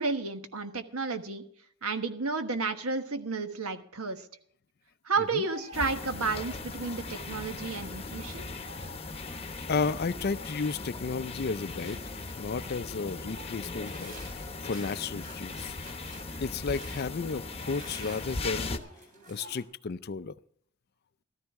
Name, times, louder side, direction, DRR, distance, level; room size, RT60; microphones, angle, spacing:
voice 1, 0.0-1.4 1.8-4.3 5.0-8.5, right 4 dB, 80° right, 8 dB, 1.3 m, -32 dB
sound 1, 5.4-19.6, right 1 dB, 35° right, 3.3 m, -51 dB
sound 2, 5.7-18.8, left 3 dB, 25° left, 0.9 m, -39 dB
voice 2, 9.7-12.0 12.4-15.8 16.4-18.8 19.3-20.3, left 4 dB, 45° left, 14 dB, 0.4 m, -33 dB
13.5 x 13.5 x 3.6 m, 0.64 s
head